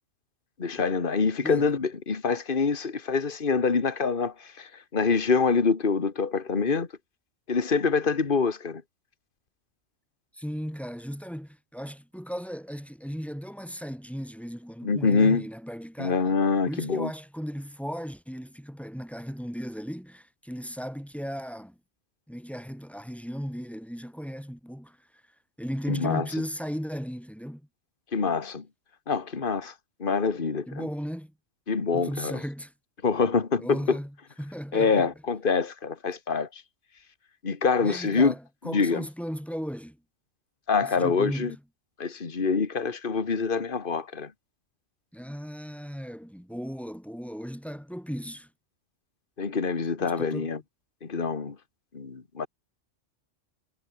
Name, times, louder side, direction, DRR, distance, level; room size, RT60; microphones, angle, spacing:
voice 1, 0.6-6.9 7.5-8.8 14.8-15.4 16.0-17.1 25.9-26.3 28.1-28.7 29.1-29.7 30.0-30.9 31.7-32.4 33.0-34.0 34.7-36.6 37.4-38.3 38.6-39.1 40.7-41.5 42.0-44.3 49.4-50.6 51.0-51.6 51.9-52.5, left 5 dB, 45° left, 2.0 m, -25 dB
voice 2, 10.3-16.2 16.7-21.8 22.3-25.0 25.6-27.6 30.7-31.3 31.9-32.7 33.6-34.1 34.4-35.1 37.8-40.0 40.8-41.6 45.1-48.5 50.0-50.5, equal, ahead, 7.7 m, -36 dB
omnidirectional pair, 1.3 m